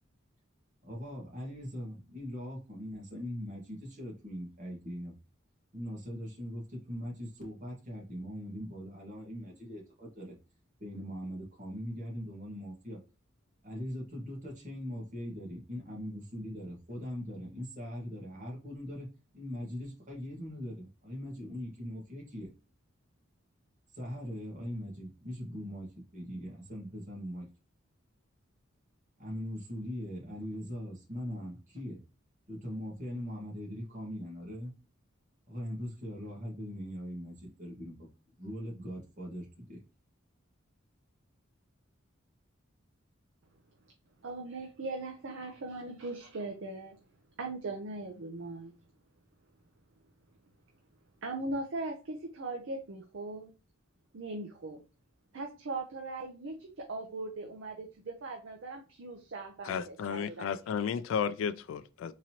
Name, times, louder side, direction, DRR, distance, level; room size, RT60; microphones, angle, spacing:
voice 1, 0.8-5.2 5.7-10.3 10.8-13.0 13.6-22.5 23.9-27.5 29.2-32.0 32.5-34.7 35.5-38.1 38.4-39.8, equal, 40° right, 1.5 m, -41 dB
voice 2, 44.2-47.0 47.4-48.7 51.2-53.5 54.1-54.8 55.3-60.5, right 2 dB, 70° right, 0.6 m, -39 dB
voice 3, 59.7-62.1, left 7 dB, 75° left, 0.3 m, -33 dB
3.8 x 3.0 x 2.8 m
head